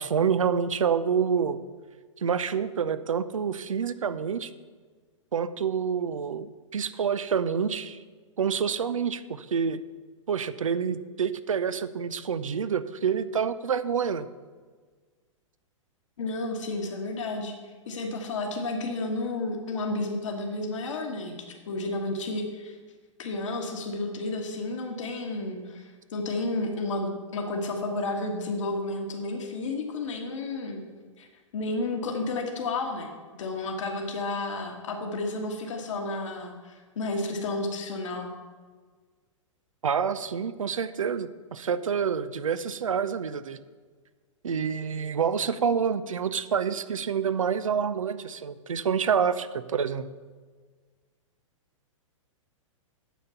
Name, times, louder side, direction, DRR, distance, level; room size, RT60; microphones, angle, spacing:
voice 1, 0.0-1.6 2.2-4.5 5.3-8.0 8.4-9.8 10.3-14.3 39.8-43.6 44.4-50.1, right 7 dB, 80° right, 14 dB, 0.6 m, -27 dB
voice 2, 16.2-17.5 17.9-21.3 21.7-22.8 23.2-30.8 31.2-31.3 31.5-38.3, left 2 dB, 65° left, 2 dB, 1.6 m, -31 dB
9.1 x 6.6 x 5.7 m, 1.5 s
hypercardioid pair, 115°, 17 cm